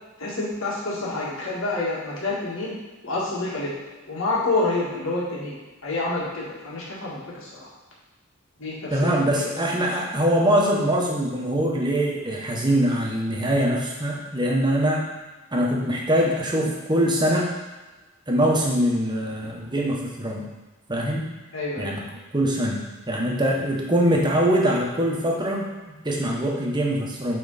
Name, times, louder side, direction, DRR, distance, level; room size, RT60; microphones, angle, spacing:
voice 1, 0.2-2.7 3.0-3.7 4.1-5.6 5.8-7.5 8.6-9.9 21.5-21.9, left 2 dB, 85° left, -5 dB, 1.9 m, -28 dB
voice 2, 8.9-15.0 15.5-17.5 18.3-20.5 20.9-21.2 21.8-22.0 22.3-27.4, equal, 20° right, -2 dB, 1.0 m, -23 dB
8.3 x 3.5 x 4.1 m, 1.2 s
head